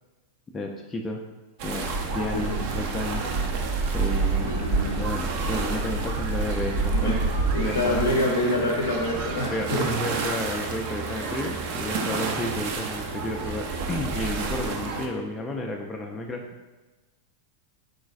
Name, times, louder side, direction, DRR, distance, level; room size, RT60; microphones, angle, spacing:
voice 1, 0.5-1.2 1.6-3.3 3.9-4.5 5.0-7.2 7.6-8.1 9.1-9.2 9.5-16.5, left 1 dB, 15° left, 0 dB, 0.4 m, -32 dB
sound 1, 1.6-15.1, right 4 dB, 45° right, 0.5 m, -28 dB
voice 2, 4.4-5.0 6.9-7.2 7.5-9.9, left 1 dB, 70° left, 0 dB, 0.6 m, -26 dB
4.9 x 3.9 x 2.4 m, 1.2 s
figure-of-eight pair, 90°, 0 cm